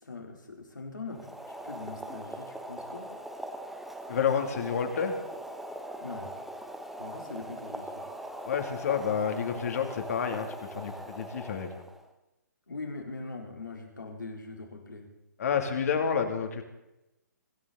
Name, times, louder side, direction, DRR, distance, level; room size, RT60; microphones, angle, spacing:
voice 1, 0.0-3.1 6.0-6.3 7.0-8.0 12.7-15.1, left 3 dB, 85° left, 2 dB, 4.0 m, -42 dB
Boiling, 1.1-12.1, right 1 dB, ahead, 1.0 m, -41 dB
voice 2, 4.1-5.2 8.4-11.7 15.4-16.6, left 7 dB, 55° left, 5 dB, 3.0 m, -29 dB
25.0 x 13.0 x 4.2 m, 0.95 s
figure-of-eight pair, 135°, 10 cm